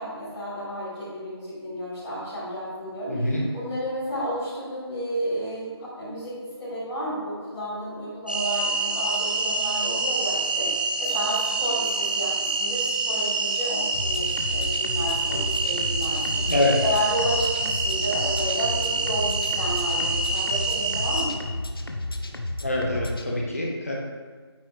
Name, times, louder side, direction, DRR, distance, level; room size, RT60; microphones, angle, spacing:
voice 1, 0.0-6.3 6.6-16.4 16.8-21.3, equal, 5° left, -15 dB, 1.3 m, -31 dB
voice 2, 3.1-3.4 16.5-16.8 22.6-23.9, left 2 dB, 35° left, -2 dB, 1.3 m, -24 dB
sound 1, 8.3-21.2, right 3 dB, 20° right, 0.6 m, -26 dB
sound 2, 13.9-23.2, left 1 dB, 55° left, 0.9 m, -32 dB
9.2 x 7.8 x 3.4 m, 1.5 s
figure-of-eight pair, 175°, 14 cm